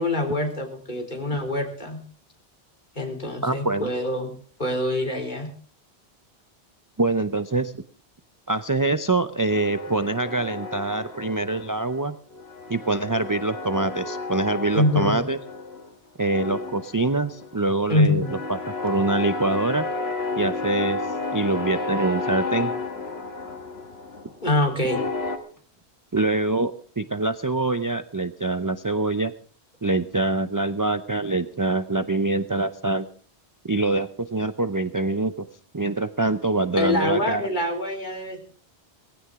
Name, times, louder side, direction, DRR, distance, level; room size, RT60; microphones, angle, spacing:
voice 1, 0.0-2.0 3.0-4.3 4.6-5.5 14.7-15.2 17.9-18.3 24.4-25.0 36.8-38.4, left 1 dB, 45° left, 3 dB, 3.9 m, -25 dB
voice 2, 3.4-3.9 7.0-7.7 8.5-12.2 12.7-15.4 16.2-18.6 18.8-19.9 20.4-21.0 21.3-22.7 26.1-29.3 29.8-33.0 33.6-35.5 35.7-37.4, right 2 dB, 25° right, 11 dB, 0.5 m, -24 dB
sound 1, 9.5-12.0 12.3-15.9 16.2-25.4, left 3 dB, 65° left, 2.0 m, -32 dB
19.0 x 16.0 x 3.7 m, 0.43 s
omnidirectional pair, 1.1 m